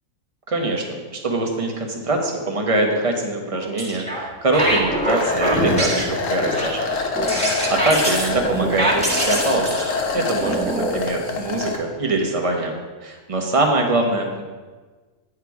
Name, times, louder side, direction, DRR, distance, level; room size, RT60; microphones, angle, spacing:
voice 1, 0.5-7.4 7.7-9.8 10.1-12.7 13.0-14.4, right 2 dB, 25° right, 2 dB, 1.1 m, -23 dB
sound 1, 3.6-4.3 4.5-11.0, right 1 dB, 5° left, 1.4 m, -24 dB
sound 2, 5.1-11.8, left 4 dB, 60° left, 1.3 m, -26 dB
9.9 x 6.7 x 4.8 m, 1.4 s
omnidirectional pair, 1.6 m